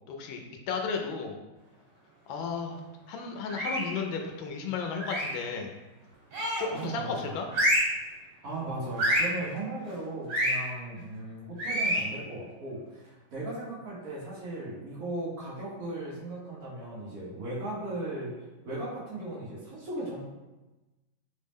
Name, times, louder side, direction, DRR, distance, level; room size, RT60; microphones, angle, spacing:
voice 1, 0.1-1.4 2.3-2.8 3.1-5.7 6.6-7.5, left 5 dB, 75° left, 3 dB, 1.3 m, -34 dB
sound 1, 3.5-4.0 5.0-5.4 6.3-6.8 7.5-8.0 9.0-9.4 10.3-10.6 11.6-12.1, equal, 90° right, 2.0 m, -27 dB
voice 2, 6.7-7.4 8.4-18.3 18.6-20.2, right 2 dB, 50° right, -7 dB, 1.4 m, -37 dB
3.9 x 2.1 x 3.5 m, 1.1 s
omnidirectional pair, 2.3 m